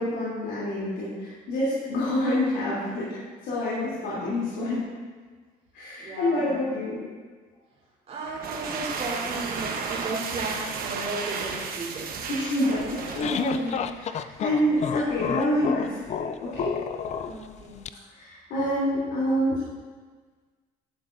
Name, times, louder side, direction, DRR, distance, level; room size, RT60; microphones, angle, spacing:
voice 1, 0.0-3.1 3.4-4.9 5.7-7.1 12.3-16.8 18.1-19.6, left 1 dB, 85° left, -10 dB, 3.0 m, -27 dB
voice 2, 6.0-6.6 8.1-12.2 14.5-14.8 17.2-17.8, right 2 dB, 40° right, -6 dB, 3.2 m, -35 dB
sound 1, 8.2-14.0, right 5 dB, 60° right, 1.1 m, -33 dB
sound 2, 12.8-17.9, left 8 dB, 40° left, 0.4 m, -31 dB
12.5 x 9.8 x 2.6 m, 1.5 s
cardioid pair, 110°, 17 cm